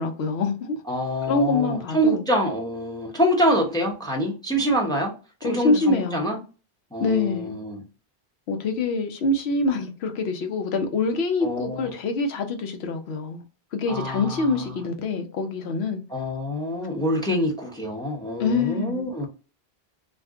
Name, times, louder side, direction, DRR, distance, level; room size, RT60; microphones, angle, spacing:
voice 1, 0.0-0.8 1.3-2.2 5.4-6.4 7.0-7.6 8.5-13.4 13.7-16.0 18.4-19.1, left 3 dB, 80° left, 0.9 m, -25 dB
voice 2, 0.9-5.1 5.4-6.4 6.9-7.8 11.4-11.9 13.9-14.7 16.1-19.3, equal, 5° left, 0.6 m, -25 dB
2.5 x 2.2 x 3.6 m
omnidirectional pair, 1.1 m